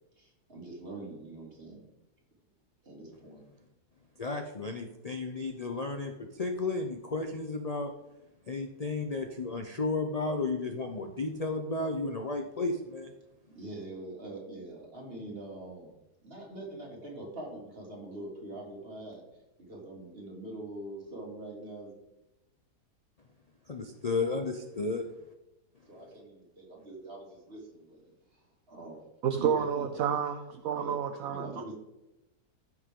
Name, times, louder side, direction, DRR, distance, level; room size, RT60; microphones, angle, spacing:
voice 1, 0.2-1.8 2.8-3.4 13.4-15.9 16.2-19.2 19.6-21.9 25.9-28.0 28.3-29.0 29.4-29.6 30.7-31.7, right 2 dB, 35° right, -2 dB, 2.9 m, -44 dB
voice 2, 4.2-7.9 8.5-13.1 23.7-25.1, left 3 dB, 40° left, 4 dB, 0.5 m, -33 dB
voice 3, 29.2-31.5, right 8 dB, 65° right, 7 dB, 1.0 m, -30 dB
15.0 x 6.3 x 3.7 m, 0.93 s
omnidirectional pair, 1.7 m